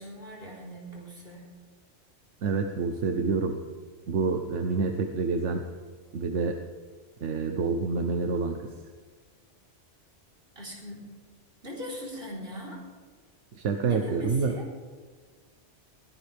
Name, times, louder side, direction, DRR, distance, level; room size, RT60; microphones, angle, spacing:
voice 1, 0.0-1.5 10.6-11.0 11.6-12.8 13.9-14.7, equal, 55° right, -5 dB, 4.5 m, -39 dB
voice 2, 2.4-3.6 4.1-5.7 6.1-6.6 7.2-8.7 13.5-14.5, right 4 dB, 80° right, 5 dB, 1.3 m, -27 dB
21.5 x 16.0 x 3.5 m, 1.5 s
omnidirectional pair, 1.2 m